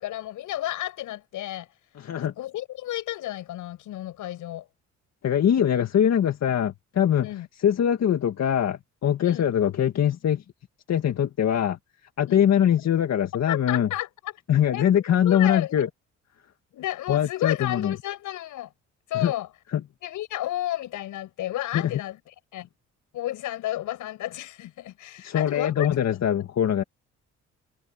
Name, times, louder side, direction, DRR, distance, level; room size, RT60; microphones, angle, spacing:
voice 1, 0.0-1.7 2.1-4.7 7.2-7.5 9.2-9.5 12.3-12.4 13.5-14.4 14.7-14.9 15.2-15.9 16.7-18.7 19.1-19.5 20.0-22.7 23.1-25.9, left 14 dB, 85° left, 7.7 m, -32 dB
voice 2, 2.0-2.3 5.2-7.3 7.6-10.4 10.9-11.8 12.2-13.9 14.5-15.9 17.1-17.9 19.1-19.3 19.7-19.8 21.7-21.9 25.2-26.8, left 9 dB, 60° left, 1.9 m, -22 dB
cardioid pair, 90°, 30 cm